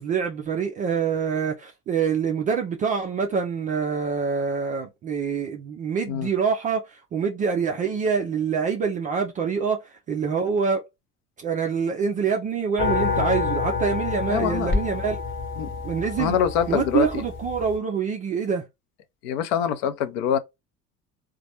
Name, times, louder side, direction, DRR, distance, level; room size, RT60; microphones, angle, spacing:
voice 1, 0.0-10.8 11.4-15.2 15.8-16.4 16.7-18.6, right 6 dB, 20° right, 0.3 m, -25 dB
sound 1, 12.8-17.8, left 4 dB, 25° left, 1.0 m, -28 dB
voice 2, 14.3-14.7 15.6-15.7 16.2-17.2 19.2-20.4, left 9 dB, 50° left, 0.7 m, -24 dB
3.9 x 2.3 x 2.8 m
figure-of-eight pair, 65°, 48 cm